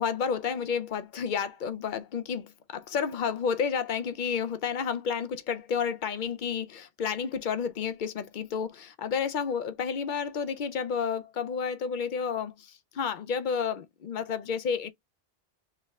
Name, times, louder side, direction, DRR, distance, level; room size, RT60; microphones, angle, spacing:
voice 1, 0.0-14.9, left 6 dB, 55° left, 0.5 m, -31 dB
4.6 x 3.2 x 2.3 m
omnidirectional pair, 1.2 m